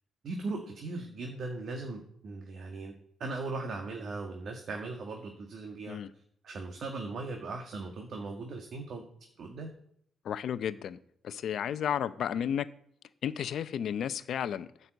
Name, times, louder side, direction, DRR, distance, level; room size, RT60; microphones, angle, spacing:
voice 1, 0.2-2.9 3.2-6.0 6.4-9.0 9.4-9.7, right 3 dB, 60° right, 2 dB, 1.7 m, -38 dB
voice 2, 10.2-11.0 11.2-12.7 13.2-14.7, left 9 dB, 65° left, 14 dB, 0.7 m, -32 dB
9.6 x 5.6 x 8.0 m, 0.67 s
cardioid pair, 90°, 0 cm